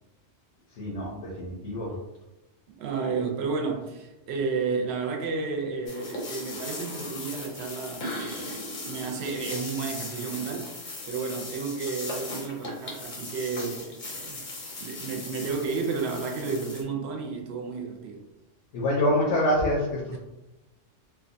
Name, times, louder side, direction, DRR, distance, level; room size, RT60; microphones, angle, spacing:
voice 1, 0.8-1.9 18.7-19.9, left 1 dB, 80° left, 1.0 m, -25 dB
voice 2, 2.8-14.4 14.8-18.2 20.0-20.2, right 4 dB, 65° right, 0.8 m, -32 dB
sound 1, 5.9-16.8, left 2 dB, 50° left, 0.7 m, -38 dB
2.7 x 2.2 x 2.5 m
omnidirectional pair, 1.2 m